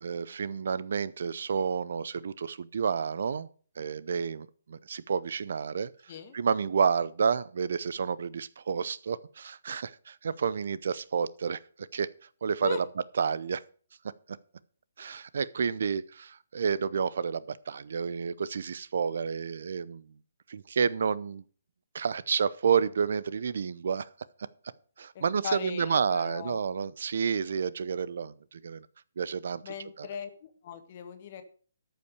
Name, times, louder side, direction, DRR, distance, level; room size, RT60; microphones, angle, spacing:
voice 1, 0.0-3.5 3.8-5.9 6.3-11.6 11.9-12.1 12.4-12.8 13.2-13.6 15.0-20.0 20.5-21.4 21.9-24.1 25.0-28.9 29.2-30.1, right 6 dB, 60° right, 18 dB, 0.6 m, -30 dB
voice 2, 25.2-26.6 29.6-31.4, left 7 dB, 40° left, 7 dB, 1.8 m, -39 dB
13.0 x 5.7 x 6.6 m, 0.44 s
figure-of-eight pair, 140°, 0 cm